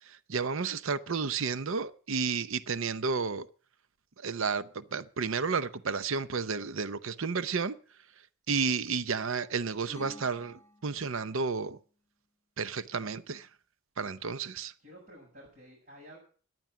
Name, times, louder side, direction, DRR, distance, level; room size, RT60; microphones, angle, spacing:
voice 1, 0.3-3.5 4.2-7.8 8.5-11.8 12.6-13.5 14.0-14.7, right 5 dB, 60° right, 0.7 m, -32 dB
sound 1, 9.9-11.5, equal, 10° left, 2.8 m, -50 dB
voice 2, 12.7-13.2 14.8-16.2, equal, 45° right, 7.1 m, -53 dB
15.0 x 10.5 x 6.1 m
head